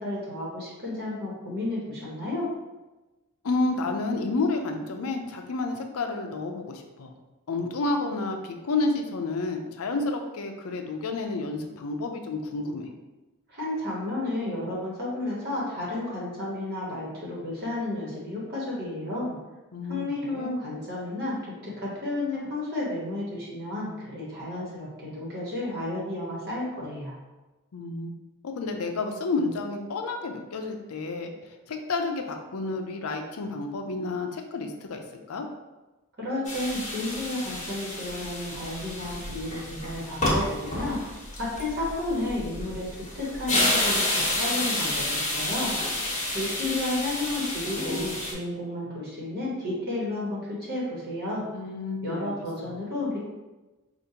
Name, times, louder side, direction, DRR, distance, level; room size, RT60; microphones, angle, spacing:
voice 1, 0.0-2.5 13.5-19.4 19.9-27.1 36.2-41.0 41.4-42.9 43.1-45.8 46.3-51.5 52.0-53.2, left 2 dB, 45° right, -6 dB, 1.2 m, -32 dB
voice 2, 3.4-7.1 7.5-12.9 19.7-20.5 27.7-28.1 28.4-35.5 51.5-52.3 52.6-52.8, left 3 dB, 70° left, 4 dB, 0.5 m, -30 dB
sound 1, 36.4-48.3, left 1 dB, 35° left, 1.1 m, -30 dB
4.9 x 2.5 x 2.8 m, 1.1 s
head